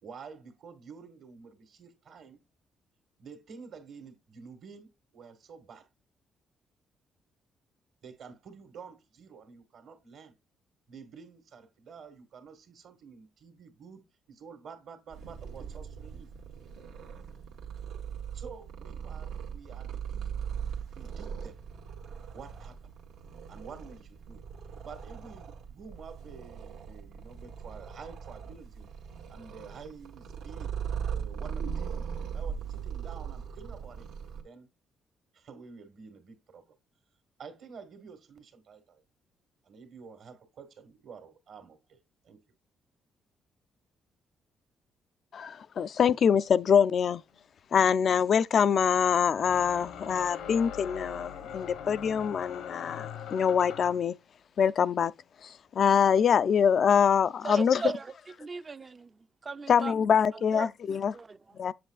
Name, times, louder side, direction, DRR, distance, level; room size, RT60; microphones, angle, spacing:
voice 1, 0.0-2.4 3.2-5.9 8.0-10.3 10.9-14.0 14.3-16.3 18.3-20.4 20.9-21.6 22.3-22.9 23.5-24.4 24.8-28.9 29.3-30.7 31.1-34.1 34.4-34.7 35.3-36.8 37.4-39.0 39.7-42.0 42.2-42.5, right 5 dB, 70° right, 1.8 m, -49 dB
Purr, 15.1-34.4, right 7 dB, 90° right, 1.5 m, -39 dB
voice 2, 45.3-47.2 47.7-54.1 54.6-55.1 55.4-57.8 59.7-61.1 61.6-61.7, left 7 dB, 55° left, 0.3 m, -24 dB
sound 1, 47.3-47.4 49.3-54.1, left 8 dB, 90° left, 1.3 m, -41 dB
voice 3, 57.4-58.1 58.4-59.9 60.3-60.7 61.1-61.6, right 4 dB, 30° right, 0.5 m, -38 dB
8.0 x 7.7 x 2.4 m
cardioid pair, 90°, 0 cm